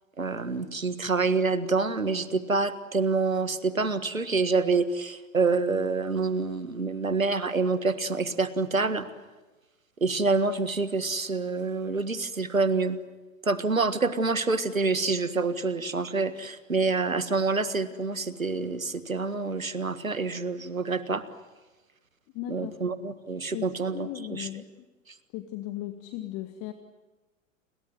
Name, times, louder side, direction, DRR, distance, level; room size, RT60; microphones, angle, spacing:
voice 1, 0.2-9.1 10.0-13.0 13.4-21.2 22.5-24.5, right 4 dB, 85° right, 13 dB, 1.7 m, -27 dB
voice 2, 22.3-22.8 23.4-24.7 25.3-26.7, left 13 dB, 35° left, 8 dB, 1.8 m, -37 dB
30.0 x 22.0 x 7.8 m, 1.2 s
figure-of-eight pair, 95°, 40 cm